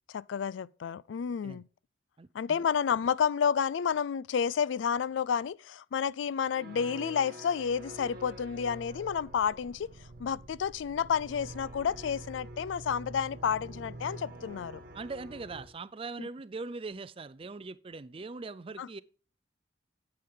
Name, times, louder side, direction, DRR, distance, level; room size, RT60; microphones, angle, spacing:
voice 1, 0.1-1.7 2.3-14.8 16.2-16.3 18.8-18.9, left 7 dB, 85° left, 0.4 m, -30 dB
voice 2, 2.2-2.6 14.9-19.0, right 3 dB, 30° right, 0.5 m, -41 dB
sound 1, 6.5-15.7, right 2 dB, 55° right, 1.8 m, -46 dB
9.6 x 8.6 x 3.8 m
head